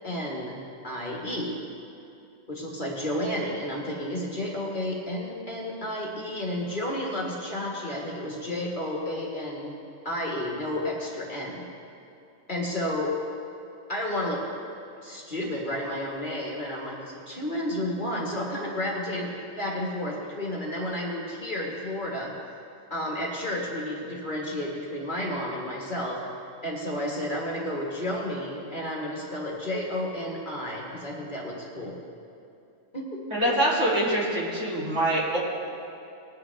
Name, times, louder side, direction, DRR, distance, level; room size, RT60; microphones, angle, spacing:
voice 1, 0.0-1.6 2.5-9.7 10.0-11.7 12.5-13.2 13.9-14.5 15.0-19.3 19.6-22.3 22.9-26.2 26.6-32.0 32.9-33.2, left 1 dB, 35° left, -3 dB, 1.8 m, -31 dB
voice 2, 33.3-35.4, right 1 dB, 55° right, -6 dB, 3.0 m, -24 dB
20.5 x 9.4 x 3.4 m, 2.7 s
omnidirectional pair, 1.5 m